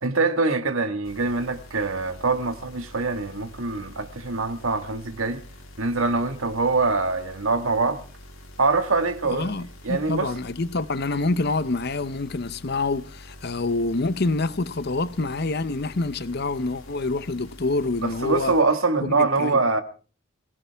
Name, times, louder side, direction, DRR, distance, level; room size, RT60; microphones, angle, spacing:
voice 1, 0.0-5.4 5.8-8.0 8.6-9.5 9.8-10.3 18.0-19.8, right 3 dB, 75° right, 1.7 m, -24 dB
sound 1, 1.0-18.6, left 1 dB, 75° left, 3.8 m, -46 dB
voice 2, 9.2-18.5 19.0-19.6, left 3 dB, 50° left, 0.8 m, -27 dB
23.0 x 17.0 x 3.5 m
head